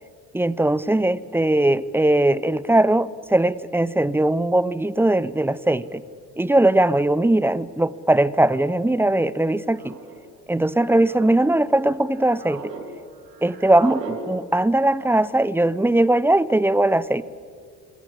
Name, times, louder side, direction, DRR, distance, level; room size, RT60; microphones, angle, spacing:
voice 1, 0.3-6.0 6.4-9.9 10.5-12.7 13.4-17.2, right 1 dB, 5° right, 0.7 m, -20 dB
sound 1, 6.1-6.2 7.2-7.5 8.5-8.9 9.7-10.2 10.8-11.5 12.0-12.9 13.1-14.2, right 5 dB, 85° right, 2.5 m, -39 dB
26.5 x 22.0 x 8.4 m
figure-of-eight pair, 55°, 47 cm